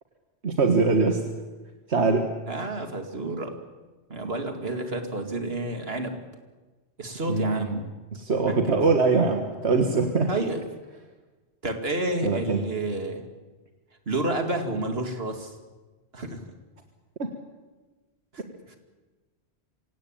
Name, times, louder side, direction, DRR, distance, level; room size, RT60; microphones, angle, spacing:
voice 1, 0.4-1.2 1.9-2.3 7.3-7.7 8.1-10.3 12.2-12.6 17.2-17.3, right 4 dB, 80° right, 4 dB, 1.9 m, -22 dB
voice 2, 2.5-3.6 4.1-6.2 7.0-7.9 8.5-8.8 10.3-10.6 11.6-13.2 14.1-15.6 16.1-16.4 18.3-18.4, right 2 dB, 65° right, 5 dB, 2.7 m, -30 dB
25.0 x 17.5 x 9.0 m, 1.3 s
omnidirectional pair, 1.1 m